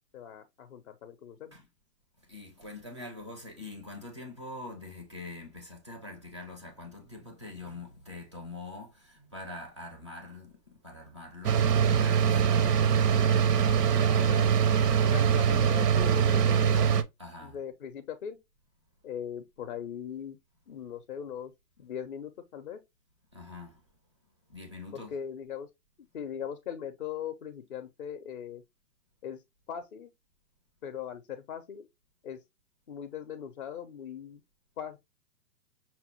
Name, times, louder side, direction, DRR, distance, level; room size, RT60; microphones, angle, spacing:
voice 1, 0.1-1.5 13.5-14.5 15.0-16.9 17.4-18.4 19.0-20.4 20.7-21.5 21.8-22.8 24.9-25.7 26.1-28.6 29.2-29.4 29.7-30.1 30.8-31.9 32.2-32.4 32.9-34.4 34.8-35.0, left 8 dB, 45° left, 0.4 m, -40 dB
voice 2, 2.3-10.6 10.8-12.5 13.3-14.3 17.2-17.6 23.3-23.8 24.5-25.1, left 2 dB, 20° right, 0.4 m, -44 dB
sound 1, 11.4-17.0, right 7 dB, 75° right, 0.6 m, -23 dB
5.7 x 2.0 x 2.8 m
hypercardioid pair, 140°, 49 cm